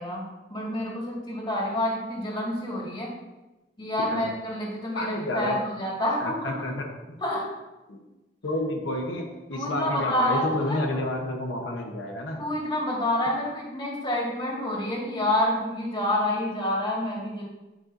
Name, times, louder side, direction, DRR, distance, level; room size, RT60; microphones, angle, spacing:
voice 1, 0.0-3.1 3.8-6.7 7.2-7.5 9.5-10.8 12.4-17.4, left 1 dB, 25° left, -4 dB, 1.9 m, -28 dB
voice 2, 4.9-5.6 6.2-6.9 7.9-8.0 8.4-12.5, left 1 dB, 90° left, 0 dB, 1.0 m, -30 dB
8.9 x 5.4 x 2.7 m, 1.1 s
head